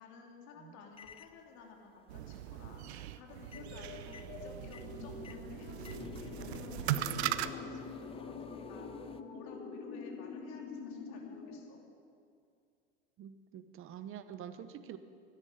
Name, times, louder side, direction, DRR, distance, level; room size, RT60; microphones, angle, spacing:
voice 1, 0.0-11.8, left 5 dB, 55° left, 1 dB, 3.0 m, -54 dB
sound 1, 1.0-1.4 3.4-3.8 4.1-9.2, left 7 dB, 15° left, 0.5 m, -53 dB
sound 2, 2.1-7.5, right 13 dB, 80° right, 0.7 m, -39 dB
sound 3, 3.5-11.6, left 4 dB, 40° left, 2.5 m, -45 dB
voice 2, 13.2-15.0, right 9 dB, 40° right, 11 dB, 1.0 m, -46 dB
13.0 x 10.0 x 8.9 m, 2.4 s
hypercardioid pair, 95°, 32 cm